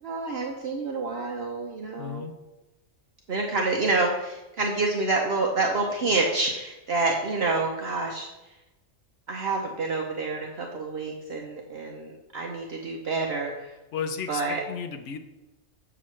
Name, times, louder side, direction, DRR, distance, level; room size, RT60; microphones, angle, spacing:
voice 1, 0.0-2.2 3.3-8.3 9.3-13.7 14.3-14.6, right 3 dB, 55° right, 1 dB, 0.9 m, -28 dB
voice 2, 2.0-2.3 13.9-15.2, left 7 dB, 70° left, 7 dB, 1.0 m, -34 dB
7.7 x 7.1 x 3.2 m, 1.0 s
omnidirectional pair, 1.3 m